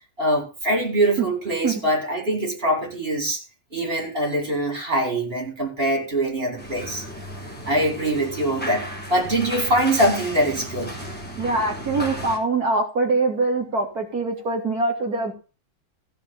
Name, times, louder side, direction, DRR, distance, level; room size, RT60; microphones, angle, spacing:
voice 1, 0.2-3.4 3.7-7.0 7.7-10.9, right 1 dB, 25° right, 5.3 m, -23 dB
sound 1, 6.6-12.4, equal, 5° left, 3.9 m, -34 dB
voice 2, 11.4-15.3, right 3 dB, 50° right, 3.1 m, -23 dB
15.5 x 5.4 x 7.2 m
omnidirectional pair, 2.1 m